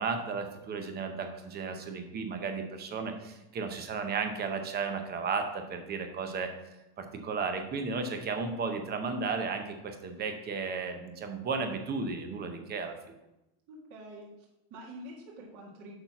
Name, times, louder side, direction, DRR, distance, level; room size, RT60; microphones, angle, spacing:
voice 1, 0.0-6.5 7.0-12.9, right 4 dB, 20° right, 6 dB, 0.8 m, -34 dB
voice 2, 13.7-16.0, right 1 dB, 40° right, -3 dB, 1.9 m, -47 dB
6.7 x 5.7 x 5.9 m, 0.93 s
supercardioid pair, 155°, 48 cm